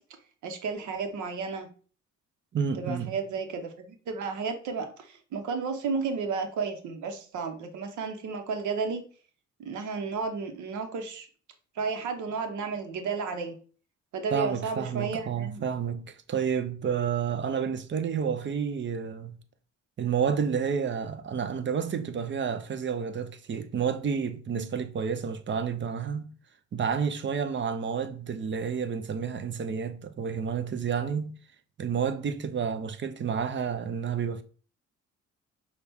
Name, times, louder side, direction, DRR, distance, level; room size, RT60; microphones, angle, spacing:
voice 1, 0.4-1.7 2.7-9.0 9.6-11.3 11.7-13.6 14.1-15.6, right 5 dB, 75° right, 1.0 m, -32 dB
voice 2, 2.5-3.2 14.3-19.4 20.0-26.3 26.7-31.4 31.8-34.4, right 7 dB, 40° right, 0.6 m, -30 dB
5.8 x 2.4 x 3.5 m
cardioid pair, 90°, 30 cm